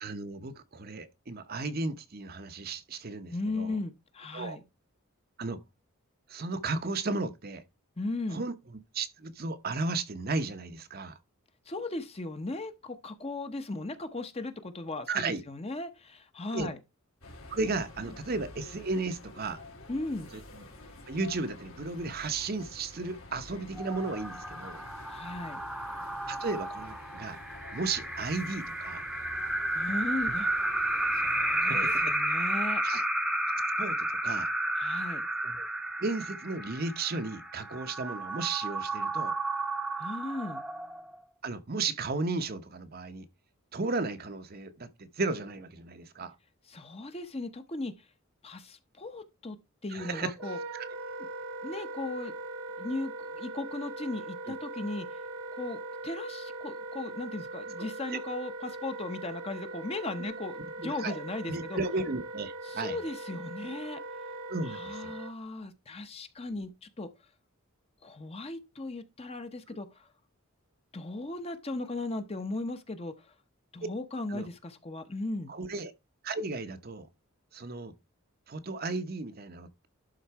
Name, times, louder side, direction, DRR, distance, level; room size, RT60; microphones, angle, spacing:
voice 1, 0.0-3.8 4.3-4.6 5.4-5.6 6.3-7.6 8.3-8.5 8.9-11.2 15.1-15.4 16.5-16.7 17.5-19.6 20.3-20.6 21.1-24.8 26.3-27.4 27.7-29.1 31.6-32.2 32.8-33.0 33.5-34.5 35.4-35.7 36.0-39.3 41.4-43.2 43.7-46.3 49.9-50.3 57.8-58.2 60.8-61.2 61.5-63.0 64.5-65.1 74.3-74.5 75.5-75.9 76.2-77.1 77.5-77.9 78.5-79.9, right 3 dB, 45° right, 0.8 m, -34 dB
voice 2, 3.3-4.6 8.0-8.4 11.7-16.8 19.9-20.3 25.1-25.6 29.7-30.5 31.1-32.8 34.8-35.3 40.0-40.6 46.7-47.9 48.4-49.6 49.8-50.6 51.6-52.3 52.8-55.2 55.5-61.8 62.6-64.0 64.6-67.1 68.0-70.1 70.9-73.3 73.7-75.5, left 2 dB, 30° left, 0.9 m, -37 dB
sound 1, 17.2-32.1, left 2 dB, 75° left, 3.0 m, -49 dB
sound 2, 23.8-41.1, right 1 dB, ahead, 0.8 m, -32 dB
Wind instrument woodwind instrument, 50.3-65.3, right 2 dB, 70° right, 1.1 m, -40 dB
11.5 x 4.0 x 4.6 m
head